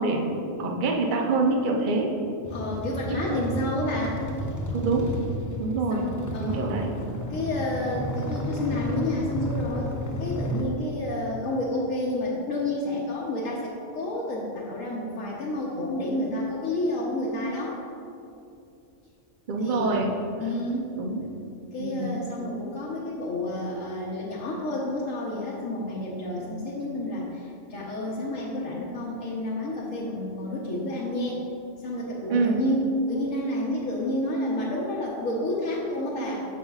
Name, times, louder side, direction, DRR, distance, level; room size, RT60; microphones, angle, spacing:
voice 1, 0.0-2.1 3.2-3.4 4.7-5.1 5.6-6.0 6.4-6.9 19.5-20.1 20.9-21.2 21.8-22.2 32.3-32.6, right 3 dB, 45° right, 0 dB, 0.8 m, -25 dB
sound 1, 2.4-10.6, equal, 30° left, 0.3 m, -32 dB
voice 2, 2.5-4.3 5.9-6.7 7.3-17.8 19.6-19.9 20.4-21.0 21.7-31.5 31.8-36.4, left 1 dB, 90° left, -6 dB, 1.3 m, -30 dB
14.0 x 5.3 x 2.4 m, 2.6 s
omnidirectional pair, 1.3 m